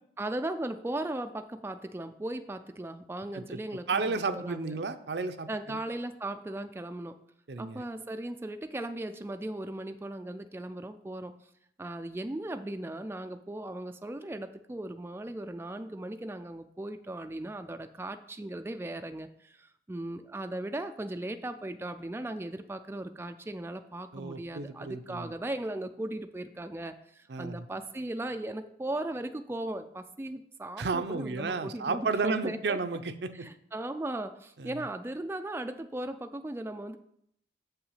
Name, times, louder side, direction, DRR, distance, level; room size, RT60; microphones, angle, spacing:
voice 1, 0.2-4.8 5.5-7.2 7.6-11.3 11.8-32.8 33.3-37.0, right 1 dB, 15° right, 7 dB, 0.3 m, -37 dB
voice 2, 3.9-5.8 7.5-7.8 24.1-25.3 27.3-27.7 30.8-33.3 34.6-34.8, right 4 dB, 70° right, 9 dB, 0.6 m, -32 dB
7.5 x 5.7 x 5.6 m, 0.73 s
head